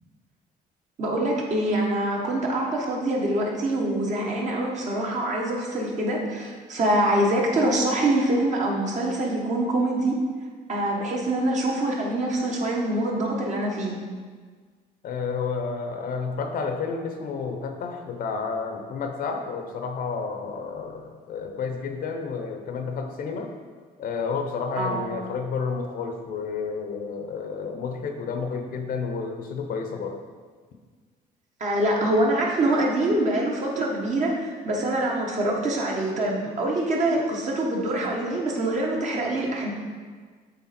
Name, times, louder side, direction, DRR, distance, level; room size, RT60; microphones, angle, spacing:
voice 1, 1.0-10.2 10.7-14.0 24.8-25.0 31.6-39.7, right 1 dB, 45° right, -2 dB, 1.4 m, -25 dB
voice 2, 15.0-23.5 24.0-30.2, left 5 dB, 60° left, 5 dB, 0.8 m, -31 dB
8.2 x 3.5 x 4.3 m, 1.5 s
cardioid pair, 110°, 17 cm